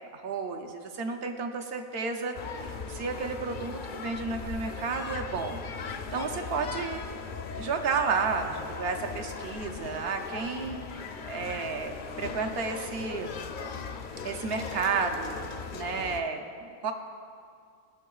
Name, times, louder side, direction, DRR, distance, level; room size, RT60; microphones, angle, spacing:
voice 1, 0.1-7.0 7.6-13.4 14.2-16.9, right 5 dB, 75° right, 4 dB, 0.9 m, -32 dB
sound 1, 2.3-16.2, left 5 dB, 60° left, 0.6 m, -38 dB
15.5 x 5.5 x 2.3 m, 2.2 s
omnidirectional pair, 1.1 m